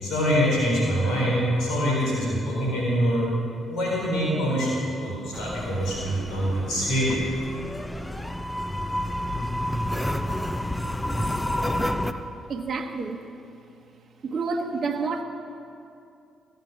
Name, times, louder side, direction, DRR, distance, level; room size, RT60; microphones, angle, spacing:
voice 1, 0.0-3.3 3.7-7.2, equal, 75° left, -5 dB, 4.0 m, -24 dB
sound 1, 5.3-12.1, left 1 dB, 10° left, 0.8 m, -29 dB
voice 2, 12.5-13.2 14.2-15.2, right 4 dB, 55° right, 3 dB, 1.1 m, -29 dB
16.0 x 9.0 x 6.1 m, 2.6 s
hypercardioid pair, 50°, 0 cm